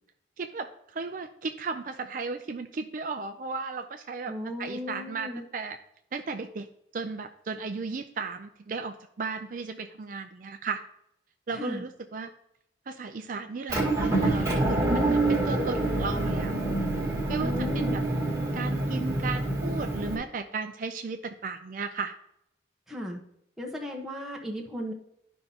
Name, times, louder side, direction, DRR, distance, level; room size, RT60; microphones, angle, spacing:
voice 1, 0.4-4.3 4.6-5.8 6.1-6.7 6.9-10.8 11.5-12.3 12.9-16.5 17.3-18.0 18.5-22.1, right 4 dB, 45° right, 7 dB, 0.4 m, -35 dB
voice 2, 4.3-5.4 11.5-11.8 17.4-17.9 22.9-23.2 23.6-24.9, left 1 dB, ahead, -2 dB, 1.1 m, -35 dB
Motor vehicle (road) / Engine, 13.7-20.2, right 2 dB, 15° right, 1.8 m, -27 dB
12.0 x 5.4 x 2.9 m, 0.77 s
head